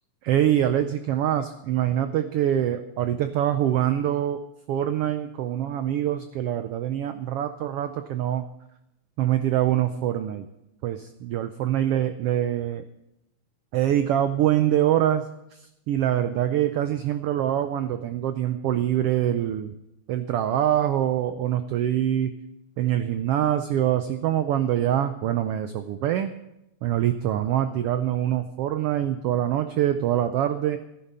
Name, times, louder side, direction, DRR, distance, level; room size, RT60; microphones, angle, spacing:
voice 1, 0.2-4.4 4.7-8.5 9.2-10.5 10.8-12.8 13.7-15.3 15.5-19.7 20.1-22.3 22.8-26.3 26.8-30.8, right 11 dB, 90° right, 9 dB, 1.3 m, -24 dB
14.5 x 11.0 x 5.5 m, 0.87 s
omnidirectional pair, 3.4 m